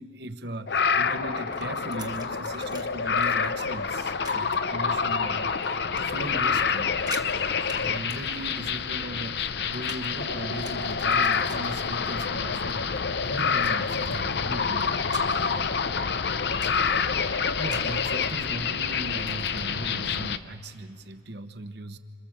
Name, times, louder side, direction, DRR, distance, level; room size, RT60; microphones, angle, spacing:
voice 1, 0.0-15.8 17.1-22.0, right 1 dB, 60° right, 8 dB, 1.1 m, -38 dB
sound 1, 0.7-20.4, left 5 dB, 60° left, 0.7 m, -27 dB
sound 2, 1.5-2.9 3.2-3.6 4.2-4.5 5.1-5.6 5.9-6.3 6.6-6.7 6.9-7.3 7.7-7.8 8.1-10.1 10.4-12.2 12.6-13.0 13.6-14.4 14.8-15.5 15.9-16.0 16.4-16.9 17.7-18.0 19.1-19.6, right 5 dB, 20° right, 1.5 m, -46 dB
27.5 x 27.0 x 7.4 m, 2.4 s
head